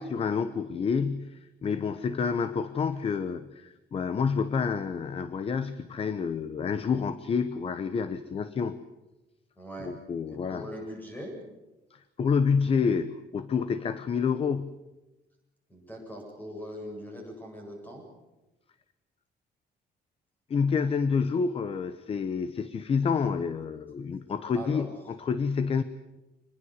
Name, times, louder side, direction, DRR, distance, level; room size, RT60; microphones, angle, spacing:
voice 1, 0.0-8.8 9.8-10.7 11.9-14.7 20.5-25.8, left 5 dB, 35° left, 13 dB, 0.9 m, -28 dB
voice 2, 9.6-9.9 10.5-11.4 15.7-18.0 24.5-24.9, equal, 10° left, 1 dB, 8.0 m, -41 dB
26.0 x 20.5 x 8.1 m, 1.0 s
cardioid pair, 175°, 18 cm